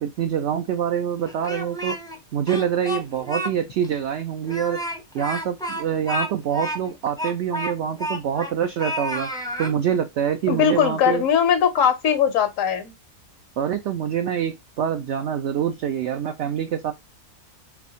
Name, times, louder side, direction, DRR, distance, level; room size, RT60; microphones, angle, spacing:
voice 1, 0.0-2.0 2.3-4.8 5.1-9.3 9.6-11.2 13.6-16.9, right 9 dB, 65° right, 0.7 m, -25 dB
Speech, 1.2-2.2 2.5-3.5 3.8-3.9 4.4-8.5 8.8-9.7, equal, 5° left, 0.5 m, -30 dB
voice 2, 10.5-12.9, left 8 dB, 65° left, 1.1 m, -20 dB
4.1 x 3.3 x 2.8 m
omnidirectional pair, 1.6 m